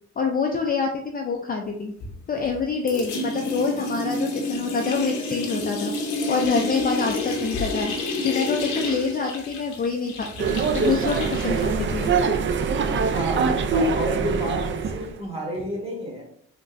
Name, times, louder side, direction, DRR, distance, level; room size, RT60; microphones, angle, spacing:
voice 1, 0.2-1.9 2.3-5.9 6.3-8.0 8.2-12.2, left 5 dB, 30° left, 0.4 m, -26 dB
sound 1, 2.0-2.6 2.9-12.2, left 2 dB, 75° left, 0.8 m, -30 dB
sound 2, 10.4-15.1, right 5 dB, 40° right, 0.4 m, -23 dB
voice 2, 13.1-16.2, right 1 dB, 20° right, 1.2 m, -30 dB
3.7 x 2.2 x 2.5 m
cardioid pair, 90°, 30 cm